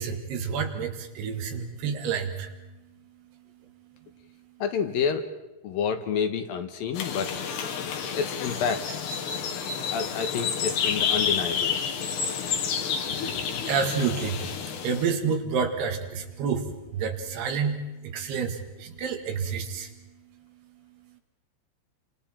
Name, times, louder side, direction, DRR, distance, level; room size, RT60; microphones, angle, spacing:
voice 1, 0.0-2.5 13.7-14.4 14.8-16.7 16.9-19.9, right 6 dB, 75° right, 4 dB, 3.9 m, -29 dB
voice 2, 4.6-5.3 5.6-7.3 8.1-8.9 9.9-11.8, left 6 dB, 70° left, 7 dB, 2.7 m, -28 dB
sound 1, 6.9-15.1, left 7 dB, 85° left, 3.9 m, -29 dB
30.0 x 25.5 x 4.4 m, 1.0 s
omnidirectional pair, 4.7 m